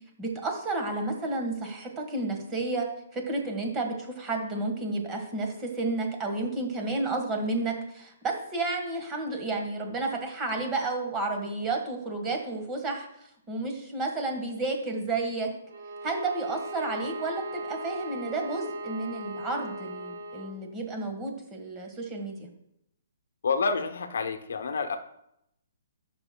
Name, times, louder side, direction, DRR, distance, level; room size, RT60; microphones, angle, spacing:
voice 1, 0.2-2.9 3.1-15.5 16.0-22.5, right 2 dB, 15° right, 3 dB, 1.5 m, -31 dB
Bowed string instrument, 15.6-20.6, right 1 dB, 85° right, 1.8 m, -38 dB
voice 2, 23.4-25.0, left 4 dB, 75° left, 7 dB, 0.8 m, -28 dB
13.0 x 5.9 x 2.3 m, 0.78 s
hypercardioid pair, 160°, 0 cm